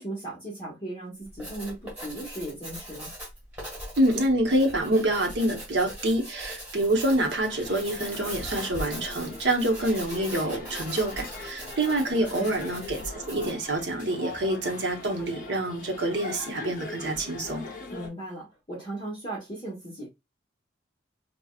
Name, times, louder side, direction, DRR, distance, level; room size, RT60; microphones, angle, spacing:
voice 1, 0.0-3.1 12.3-12.5 17.9-20.1, right 1 dB, 25° left, 1.2 m, -37 dB
Writing, 1.2-13.7, equal, 5° right, 1.6 m, -41 dB
voice 2, 4.0-17.7, right 1 dB, 60° right, 1.0 m, -26 dB
sound 1, 7.5-18.1, left 2 dB, 40° left, 0.9 m, -41 dB
4.9 x 2.3 x 2.3 m
head